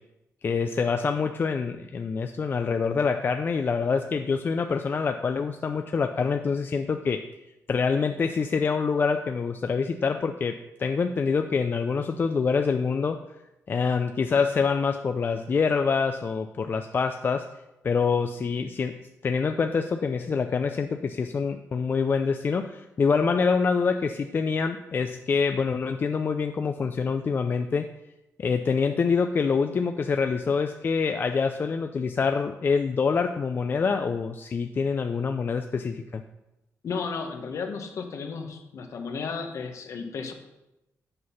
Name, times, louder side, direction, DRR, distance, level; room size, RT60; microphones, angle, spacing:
voice 1, 0.4-7.2 7.7-13.2 13.7-17.5 17.8-27.9 28.4-36.2, left 5 dB, 35° left, 6 dB, 0.3 m, -26 dB
voice 2, 36.8-40.3, left 5 dB, 60° left, 6 dB, 0.9 m, -33 dB
7.6 x 4.1 x 5.6 m, 0.95 s
cardioid pair, 115°, 6 cm